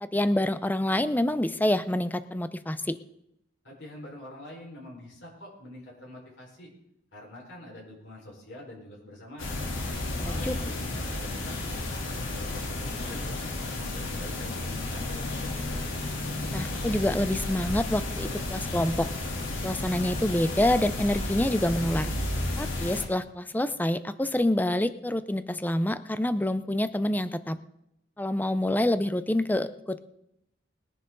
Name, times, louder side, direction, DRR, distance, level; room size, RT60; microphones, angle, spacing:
voice 1, 0.0-3.0 10.2-10.6 16.5-19.1 19.6-22.1 22.6-27.6 28.2-30.1, left 1 dB, 10° left, 13 dB, 0.5 m, -27 dB
voice 2, 3.6-6.7 7.1-9.7 10.2-13.4 13.7-15.7, left 1 dB, 65° left, -3 dB, 5.0 m, -45 dB
sound 1, 9.4-23.1, left 2 dB, 85° left, 3.1 m, -32 dB
20.5 x 10.5 x 3.9 m, 0.81 s
head